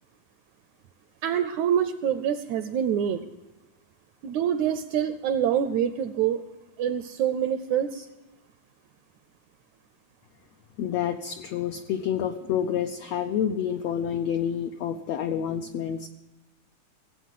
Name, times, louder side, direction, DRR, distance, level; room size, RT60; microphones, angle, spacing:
voice 1, 1.2-3.2 4.2-6.4 6.8-8.1, right 9 dB, 80° right, 11 dB, 1.7 m, -26 dB
voice 2, 10.8-16.1, left 9 dB, 80° left, 7 dB, 1.4 m, -28 dB
17.5 x 8.4 x 7.5 m, 1.0 s
omnidirectional pair, 3.7 m